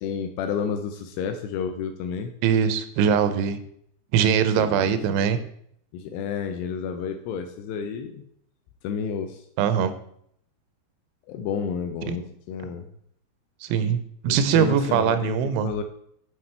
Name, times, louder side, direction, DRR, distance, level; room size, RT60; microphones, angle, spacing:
voice 1, 0.0-2.3 4.6-5.0 5.9-8.2 8.8-9.5 11.3-12.9 14.3-15.8, left 6 dB, 85° left, 7 dB, 2.4 m, -31 dB
voice 2, 2.4-3.6 4.1-5.4 9.6-9.9 12.1-12.2 13.6-15.7, right 7 dB, 85° right, 11 dB, 3.1 m, -22 dB
7.8 x 5.7 x 4.3 m, 0.68 s
omnidirectional pair, 5.4 m